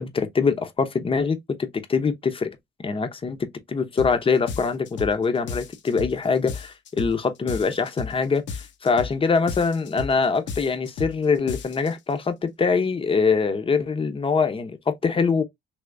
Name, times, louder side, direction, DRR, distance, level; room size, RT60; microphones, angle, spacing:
voice 1, 0.0-2.5 2.8-3.4 3.7-15.4, left 5 dB, 25° left, 0.7 m, -23 dB
sound 1, 4.0-4.2 4.5-5.2 5.5-6.2 6.5-7.2 7.5-8.2 8.5-9.2 9.5-10.2 10.5-11.2 11.5-11.9, left 5 dB, 65° left, 0.8 m, -33 dB
3.4 x 2.8 x 2.5 m
cardioid pair, 90°, 20 cm